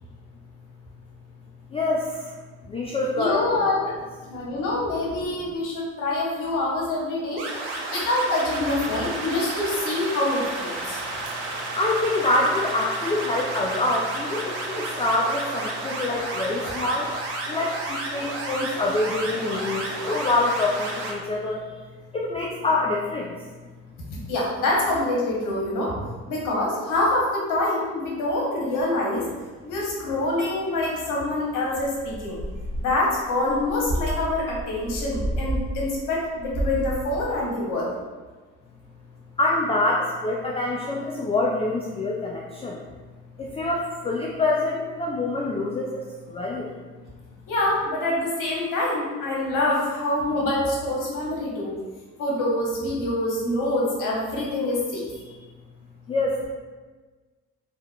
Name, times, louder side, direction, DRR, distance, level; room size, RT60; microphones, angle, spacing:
voice 1, 1.7-2.3 2.7-3.7 11.7-17.1 17.5-21.7 22.1-23.4 39.4-42.8 43.4-46.7 55.2-55.4 56.1-56.5, left 2 dB, 20° left, -2 dB, 0.3 m, -26 dB
voice 2, 3.2-3.9 4.3-7.4 7.9-11.0 19.5-19.6 24.1-25.9 26.3-29.2 29.6-32.4 32.8-37.9 47.5-51.7 52.2-55.0, left 2 dB, 65° left, -4 dB, 1.0 m, -25 dB
sound 1, 7.4-21.1, right 2 dB, 75° right, 0.6 m, -32 dB
sound 2, 29.2-36.0 36.3-37.3, equal, 35° right, 0.9 m, -32 dB
3.3 x 2.2 x 2.2 m, 1.4 s
hypercardioid pair, 50°, 34 cm